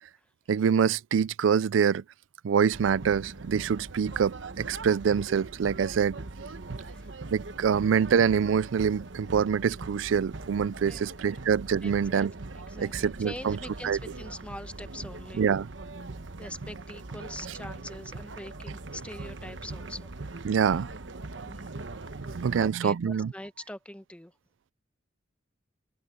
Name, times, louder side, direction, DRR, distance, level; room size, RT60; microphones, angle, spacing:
voice 1, 0.5-2.0 2.4-6.2 7.3-12.3 12.8-13.6 13.8-14.0 15.4-15.7 20.5-20.9 22.3-23.3, right 7 dB, 90° right, 0.4 m, -25 dB
sound 1, 2.7-22.6, right 3 dB, 70° right, 1.1 m, -41 dB
voice 2, 6.7-7.1 10.8-11.4 11.8-15.4 16.4-20.1 21.4-21.9 22.5-24.3, left 1 dB, 5° left, 1.0 m, -44 dB
open air
head